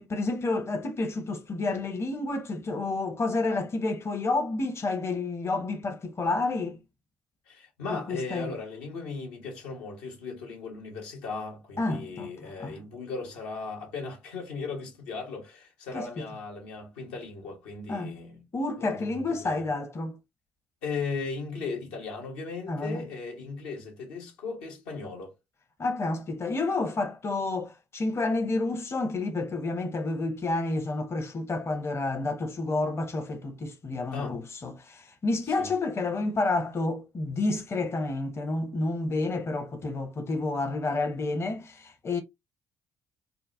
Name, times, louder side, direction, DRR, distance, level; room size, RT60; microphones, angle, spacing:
voice 1, 0.0-6.8 7.9-8.5 11.8-12.8 15.9-16.3 17.9-18.2 18.5-20.2 22.7-23.0 25.8-42.2, left 2 dB, 35° left, 0.7 m, -30 dB
voice 2, 7.5-18.4 18.8-19.6 20.8-25.3 34.1-34.4 35.6-35.7, left 4 dB, 75° left, 1.0 m, -37 dB
3.8 x 2.1 x 2.4 m
hypercardioid pair, 50°, 7 cm